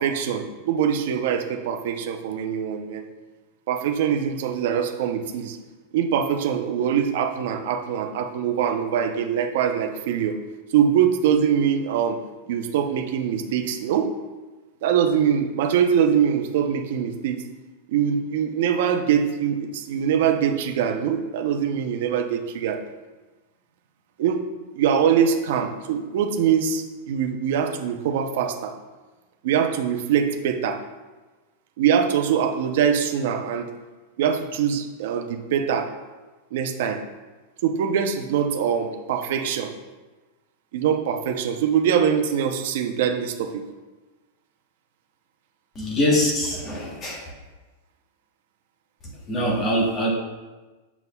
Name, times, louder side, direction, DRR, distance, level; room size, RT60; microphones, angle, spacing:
voice 1, 0.0-3.0 3.7-5.6 5.9-10.4 10.7-12.2 12.5-14.1 14.8-17.4 17.9-22.8 24.2-24.4 24.7-28.7 29.4-30.8 31.8-33.7 34.2-35.9 36.5-37.0 37.6-39.7 40.7-43.6, right 8 dB, 50° right, 6 dB, 0.6 m, -23 dB
voice 2, 45.7-47.2 49.3-50.1, equal, 20° left, -1 dB, 1.0 m, -23 dB
6.9 x 6.3 x 2.2 m, 1.2 s
supercardioid pair, 180°, 0 cm